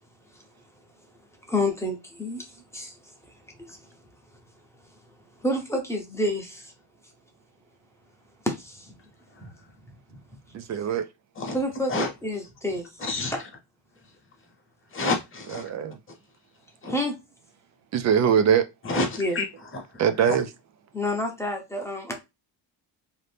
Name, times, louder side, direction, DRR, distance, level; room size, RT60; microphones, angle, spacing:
voice 1, 1.5-2.5 2.7-2.9 3.7-3.8 5.4-6.7 8.4-8.9 9.4-9.5 10.1-10.2 11.5-11.9 12.2-12.8 16.9-17.1 19.2-19.4 20.9-22.1, left 1 dB, 5° left, 0.6 m, -28 dB
voice 2, 10.5-11.1 15.5-16.0 17.9-18.7 20.0-20.5, right 8 dB, 40° right, 0.4 m, -22 dB
voice 3, 13.0-13.3 14.9-15.6 16.8-16.9 18.8-19.5 19.7-19.8 20.3-20.4, left 2 dB, 30° left, 0.9 m, -28 dB
2.8 x 2.5 x 3.3 m
cardioid pair, 150°, 44 cm